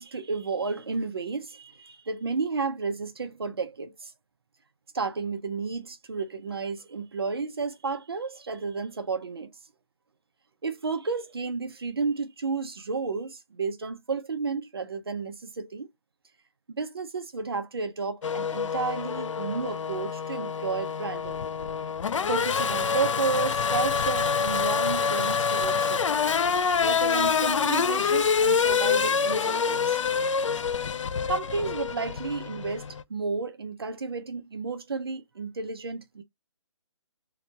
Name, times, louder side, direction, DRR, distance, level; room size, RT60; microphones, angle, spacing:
voice 1, 0.0-4.1 4.9-9.5 10.6-15.9 16.7-21.4 22.3-26.0 26.5-30.0 31.3-36.2, right 4 dB, 50° right, 0.6 m, -32 dB
Race car auto racing / Accelerating revving vroom, 18.2-33.0, left 6 dB, 70° left, 0.4 m, -26 dB
2.9 x 2.2 x 3.8 m
hypercardioid pair, 180°, 16 cm